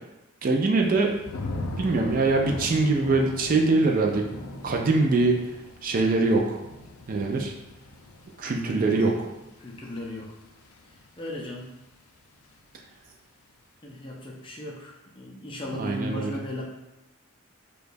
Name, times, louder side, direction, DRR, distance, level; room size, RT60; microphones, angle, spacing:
voice 1, 0.4-1.1 1.8-4.2 4.6-5.4 5.8-6.6 7.1-7.5 8.4-9.1 15.8-16.3, right 3 dB, 40° right, 1 dB, 0.4 m, -23 dB
Thunder / Rain, 0.8-11.7 12.1-12.6, left 2 dB, 90° left, 0.5 m, -40 dB
voice 2, 8.7-9.1 9.6-10.4 10.9-11.7 13.8-16.6, left 1 dB, 25° left, -1 dB, 0.5 m, -37 dB
4.8 x 2.3 x 2.6 m, 0.94 s
head